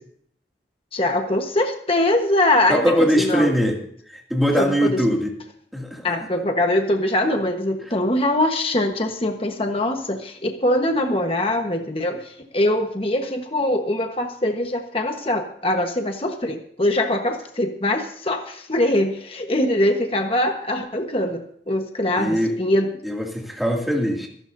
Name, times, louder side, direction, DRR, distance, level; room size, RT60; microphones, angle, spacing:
voice 1, 0.9-3.5 4.6-5.0 6.0-22.9, left 1 dB, 30° left, 4 dB, 1.3 m, -22 dB
voice 2, 2.7-3.8 4.1-5.3 5.7-6.2 22.2-22.5 23.0-24.3, equal, ahead, -1 dB, 2.5 m, -21 dB
25.0 x 12.0 x 2.7 m, 0.62 s
head